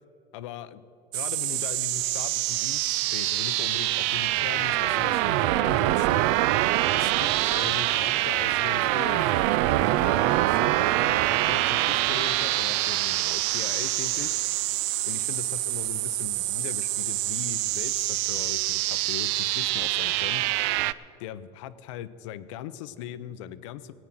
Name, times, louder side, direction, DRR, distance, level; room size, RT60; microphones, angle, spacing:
voice 1, 0.3-0.8 1.1-6.2 6.9-9.3 10.0-14.4 15.0-20.5 21.2-23.9, left 11 dB, 85° left, 14 dB, 0.6 m, -39 dB
sound 1, 1.1-20.9, right 17 dB, 75° right, 0.4 m, -25 dB
sound 2, 7.1-12.0, right 3 dB, 90° right, 2.8 m, -50 dB
17.5 x 9.1 x 6.0 m, 2.6 s
supercardioid pair, 120°, 15 cm